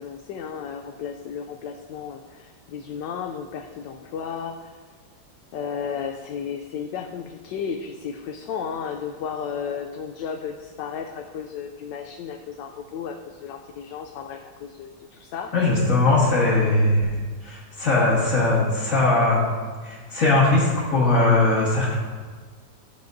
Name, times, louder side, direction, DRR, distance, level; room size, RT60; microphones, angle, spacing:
voice 1, 0.0-4.8 5.5-15.5 16.0-16.3, left 7 dB, 75° left, 4 dB, 1.2 m, -34 dB
voice 2, 15.5-17.2 17.4-19.4 19.8-21.9, left 2 dB, 45° left, -10 dB, 1.9 m, -20 dB
13.5 x 6.8 x 2.6 m, 1.5 s
omnidirectional pair, 2.0 m